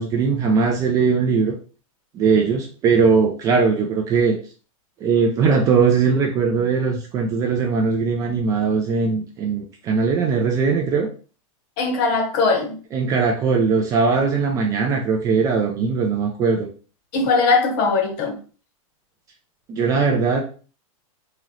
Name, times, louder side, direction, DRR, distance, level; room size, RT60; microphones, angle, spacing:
voice 1, 0.0-1.6 2.1-4.4 5.0-11.1 12.9-16.7 19.7-20.4, right 5 dB, 20° right, 0.4 m, -20 dB
voice 2, 11.8-12.8 17.1-18.4, left 4 dB, 40° left, 1.0 m, -20 dB
3.8 x 2.8 x 3.1 m
supercardioid pair, 155°, 19 cm